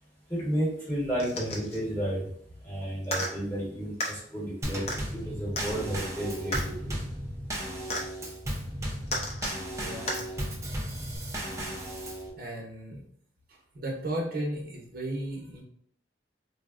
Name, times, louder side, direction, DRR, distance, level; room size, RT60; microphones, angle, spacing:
voice 1, 0.3-2.2 2.6-4.8 5.1-6.9, equal, 10° left, -6 dB, 1.1 m, -32 dB
sound 1, 1.2-1.8 3.0-3.3 4.0-4.1 4.9-5.0 5.6-5.7 6.5-6.7 7.9-8.1 9.1-9.6 10.1-10.2 11.1-11.2, equal, 35° left, 0.6 m, -32 dB
Drum kit / Snare drum / Bass drum, 4.6-12.3, equal, 15° right, 0.6 m, -35 dB
voice 2, 9.8-10.2 12.4-13.0 13.7-15.6, right 1 dB, 55° right, -2 dB, 0.7 m, -35 dB
3.7 x 2.1 x 2.4 m, 0.66 s
head